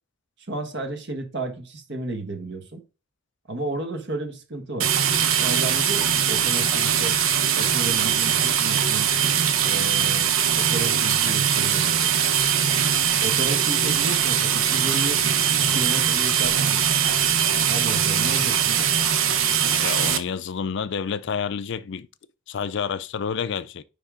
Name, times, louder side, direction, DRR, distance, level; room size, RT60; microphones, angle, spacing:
voice 1, 0.5-2.8 3.5-4.9 5.4-7.2 7.5-9.1 9.6-12.2 13.2-16.9 17.7-18.9, right 2 dB, 60° right, 1.4 m, -33 dB
sound 1, 4.8-20.2, right 8 dB, 85° right, 0.9 m, -21 dB
voice 2, 19.8-22.1 22.5-23.8, left 6 dB, 60° left, 0.5 m, -29 dB
9.8 x 3.6 x 3.7 m
head